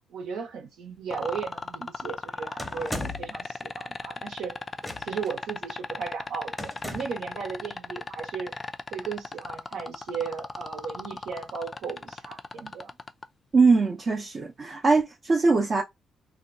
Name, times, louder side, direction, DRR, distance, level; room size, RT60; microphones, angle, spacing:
voice 1, 0.1-4.6 5.0-8.5 8.9-12.9, right 6 dB, 80° right, 1.0 m, -36 dB
sound 1, 1.1-13.2 14.9-15.0, left 3 dB, 30° left, 0.3 m, -36 dB
sound 2, 2.6-3.4 4.8-5.3 6.6-7.3, left 1 dB, 5° left, 0.7 m, -36 dB
voice 2, 13.5-15.8, right 4 dB, 40° right, 0.6 m, -21 dB
2.8 x 2.2 x 2.6 m
cardioid pair, 90°, 0 cm